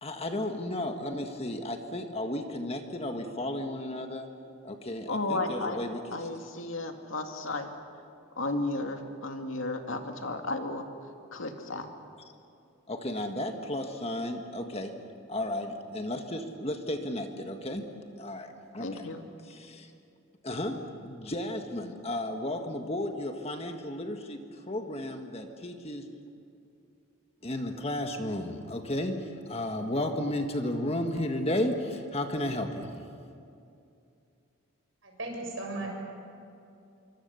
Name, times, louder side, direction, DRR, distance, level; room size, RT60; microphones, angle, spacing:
voice 1, 0.0-4.3 4.6-6.2 12.9-14.9 15.3-17.9 18.2-19.0 19.6-19.9 20.4-24.4 24.7-26.1 27.4-32.9, left 1 dB, 30° left, 5 dB, 1.6 m, -33 dB
voice 2, 5.1-5.8 6.1-7.7 8.4-10.9 11.3-11.9 18.8-19.3, left 2 dB, 75° left, 4 dB, 2.3 m, -33 dB
voice 3, 35.0-35.9, right 2 dB, 65° right, 0 dB, 7.1 m, -36 dB
26.5 x 24.5 x 7.1 m, 2.6 s
head